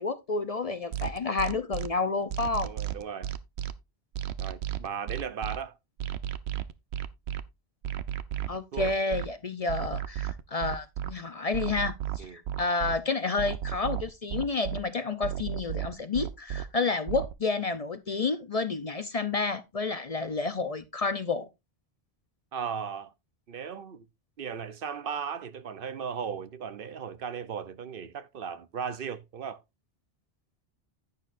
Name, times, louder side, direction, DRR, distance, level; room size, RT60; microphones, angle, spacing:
voice 1, 0.0-2.7 8.5-21.5, left 3 dB, 45° left, 0.6 m, -30 dB
sound 1, 0.9-1.9 2.3-3.7 4.2-5.6 6.0-7.4 7.8-9.3 9.7-11.1 11.5-13.0 13.4-14.8 15.2-16.6 17.1-17.3, right 11 dB, 90° right, 0.9 m, -33 dB
voice 2, 2.6-3.3 4.4-5.7 8.7-8.9 12.2-12.4 22.5-23.1 23.5-24.0 24.4-29.6, right 7 dB, 60° right, 0.8 m, -36 dB
10.5 x 9.2 x 2.5 m
omnidirectional pair, 1.0 m